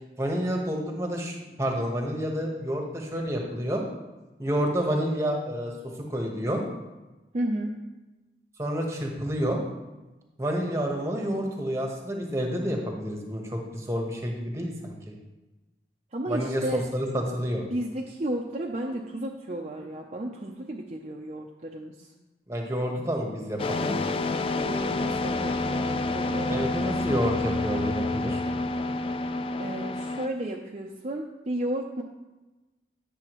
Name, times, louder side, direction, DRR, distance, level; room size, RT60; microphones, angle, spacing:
voice 1, 0.2-3.8 4.4-5.7 6.1-6.6 8.6-9.6 10.4-15.1 16.3-16.6 16.9-17.6 22.5-24.2 26.5-28.4, equal, 15° right, 1 dB, 1.1 m, -29 dB
voice 2, 7.3-7.8 16.1-16.9 17.7-22.1 24.6-26.7 29.6-32.0, right 1 dB, 40° right, 0 dB, 0.5 m, -33 dB
sound 1, 23.6-30.3, left 2 dB, 30° left, 0.3 m, -28 dB
9.6 x 7.0 x 3.0 m, 1.1 s
head